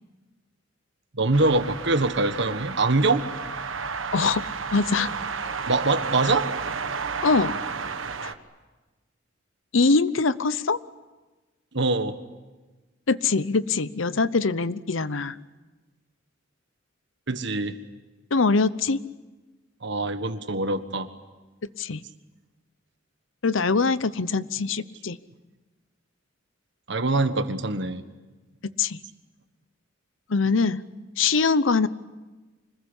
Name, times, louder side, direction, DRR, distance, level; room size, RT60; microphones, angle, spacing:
voice 1, 1.1-3.3 5.6-6.5 11.7-12.2 17.3-17.8 19.8-21.1 26.9-28.0, right 2 dB, 60° right, 10 dB, 1.5 m, -24 dB
sound 1, 1.3-8.3, right 5 dB, 80° right, 1.3 m, -32 dB
voice 2, 4.1-4.4 4.7-5.1 7.2-7.5 8.2-8.3 9.7-10.8 13.1-15.4 18.3-19.0 21.8-22.0 23.4-25.2 28.8-29.0 30.3-30.8 31.2-31.9, left 4 dB, 75° left, 16 dB, 0.8 m, -23 dB
25.5 x 21.0 x 10.0 m, 1.2 s
head